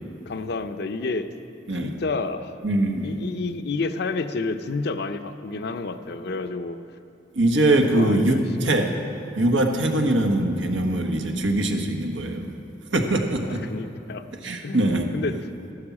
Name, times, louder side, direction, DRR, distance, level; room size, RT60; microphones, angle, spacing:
voice 1, 0.3-1.3 1.8-2.6 3.0-6.8 7.9-8.8 13.5-14.3 14.6-15.3, left 3 dB, 60° left, 9 dB, 0.6 m, -30 dB
voice 2, 2.6-3.1 7.3-9.0 9.3-12.5 12.9-13.7 14.4-15.1, right 1 dB, 90° right, 4 dB, 1.3 m, -22 dB
13.0 x 9.7 x 7.3 m, 2.6 s
head